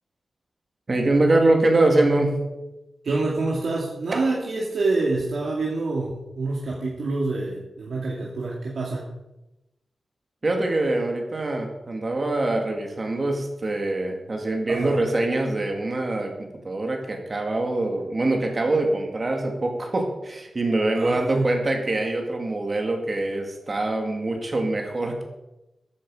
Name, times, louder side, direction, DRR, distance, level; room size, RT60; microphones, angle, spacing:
voice 1, 0.9-2.4 10.4-25.2, right 2 dB, 35° right, 2 dB, 2.3 m, -24 dB
voice 2, 3.0-9.1 14.7-15.0 20.9-21.5, right 3 dB, 70° right, -3 dB, 2.3 m, -27 dB
14.5 x 9.9 x 4.9 m, 0.97 s
wide cardioid pair, 140°, 0 cm